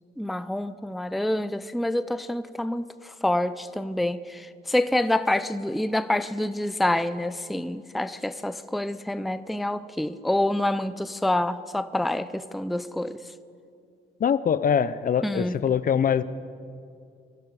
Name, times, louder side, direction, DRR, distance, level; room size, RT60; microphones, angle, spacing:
voice 1, 0.2-13.2 15.2-15.6, left 1 dB, ahead, 0.5 m, -27 dB
voice 2, 14.2-16.2, left 8 dB, 45° left, 0.6 m, -23 dB
25.0 x 11.5 x 4.8 m
cardioid pair, 90°, 20 cm